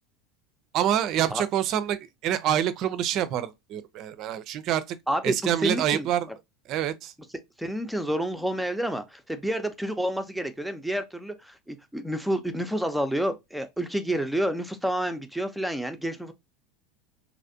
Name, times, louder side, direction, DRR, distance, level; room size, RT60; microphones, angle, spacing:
voice 1, 0.7-5.0 5.2-6.3 6.7-7.1, right 10 dB, 45° right, 0.5 m, -26 dB
voice 2, 5.1-6.1 7.6-16.3, right 1 dB, ahead, 0.6 m, -29 dB
3.2 x 2.7 x 2.6 m
figure-of-eight pair, 75°, 0 cm